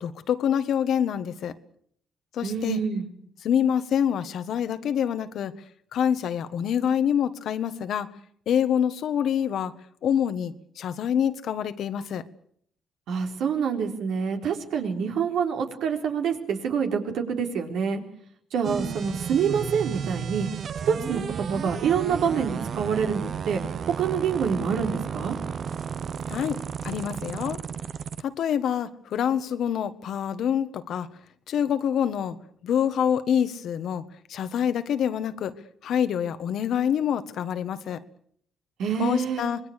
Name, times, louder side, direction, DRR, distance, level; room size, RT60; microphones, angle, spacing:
voice 1, 0.0-1.5 2.3-2.8 3.4-5.5 5.9-8.1 8.5-9.7 10.0-12.2 26.3-26.6 26.8-27.6 28.2-31.1 31.5-32.4 32.6-34.0 34.3-35.5 35.8-38.0 39.0-39.6, left 9 dB, 70° left, 11 dB, 1.5 m, -26 dB
voice 2, 2.4-3.1 13.1-18.0 18.5-20.5 20.9-23.6 24.0-25.4 38.8-39.5, right 6 dB, 80° right, 3 dB, 4.0 m, -26 dB
sound 1, 18.6-28.2, right 7 dB, 55° right, 1.0 m, -33 dB
26.0 x 20.5 x 6.7 m, 0.64 s
cardioid pair, 90°, 0 cm